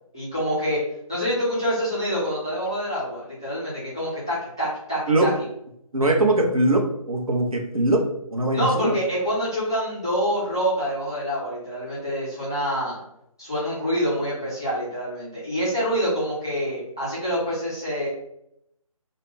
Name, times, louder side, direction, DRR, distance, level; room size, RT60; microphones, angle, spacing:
voice 1, 0.1-0.8 1.1-5.3 8.5-13.0 13.4-18.1, equal, 10° left, -11 dB, 0.3 m, -26 dB
voice 2, 5.9-8.0 8.3-8.9, right 1 dB, 80° right, 2 dB, 0.7 m, -21 dB
2.3 x 2.1 x 3.3 m, 0.78 s
figure-of-eight pair, 150°, 18 cm